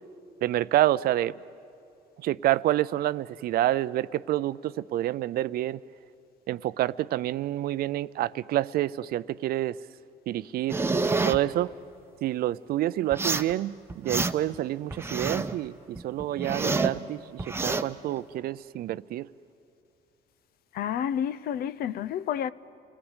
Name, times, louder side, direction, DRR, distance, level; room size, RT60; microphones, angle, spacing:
voice 1, 0.4-1.3 2.2-5.8 6.5-9.7 10.3-10.8 11.2-11.7 12.2-15.7 16.0-19.3, right 14 dB, 65° right, 0.5 m, -28 dB
sound 1, 10.7-11.4 13.1-13.5 13.9-14.6 14.9-15.6 16.0-17.0 17.4-17.8, right 3 dB, 15° right, 0.8 m, -28 dB
voice 2, 20.7-22.5, left 9 dB, 65° left, 0.6 m, -30 dB
28.5 x 18.5 x 8.1 m
cardioid pair, 110°, 17 cm